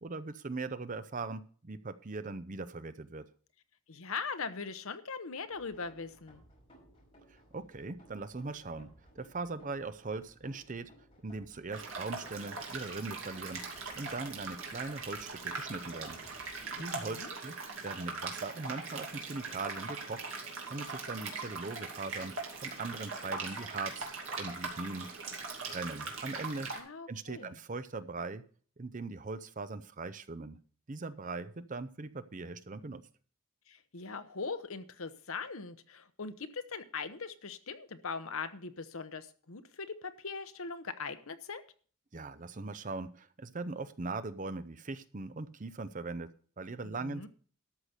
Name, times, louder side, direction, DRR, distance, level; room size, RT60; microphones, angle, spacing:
voice 1, 0.0-3.3 7.5-10.9 11.2-13.7 14.0-16.2 16.8-17.6 17.8-20.3 20.7-24.1 24.4-25.1 25.7-26.7 27.1-28.4 28.8-30.6 30.9-33.0 42.1-46.3 46.6-47.3, right 3 dB, 35° right, 13 dB, 0.6 m, -40 dB
voice 2, 3.9-6.4 16.7-17.4 26.7-27.6 33.7-41.6 46.8-47.3, left 5 dB, 70° left, 11 dB, 1.0 m, -41 dB
sound 1, 5.5-16.8, equal, 25° left, 5.3 m, -60 dB
sound 2, 11.7-26.8, right 4 dB, 60° right, 2.6 m, -41 dB
13.0 x 5.9 x 6.6 m, 0.44 s
head